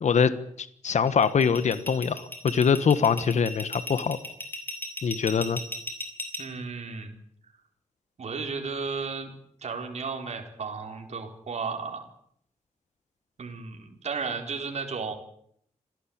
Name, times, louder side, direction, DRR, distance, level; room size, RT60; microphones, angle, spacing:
voice 1, 0.0-4.2 5.0-5.6, left 6 dB, 65° left, 13 dB, 1.4 m, -24 dB
sound 1, 1.1-6.4, left 1 dB, 15° left, 5.2 m, -35 dB
voice 2, 6.4-7.1 8.2-9.3 9.6-12.0 13.4-15.1, right 5 dB, 60° right, 3 dB, 4.3 m, -34 dB
26.5 x 17.5 x 8.8 m, 0.69 s
wide cardioid pair, 150°, 13 cm